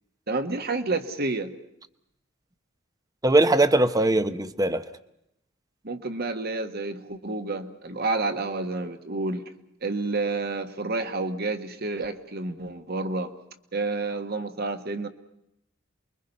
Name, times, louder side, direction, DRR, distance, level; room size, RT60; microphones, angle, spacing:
voice 1, 0.3-1.5 5.8-9.4 9.8-13.3 13.7-15.1, right 3 dB, 50° right, 1.6 m, -29 dB
voice 2, 3.2-4.8, right 2 dB, 20° right, 0.9 m, -20 dB
28.5 x 22.5 x 5.5 m
head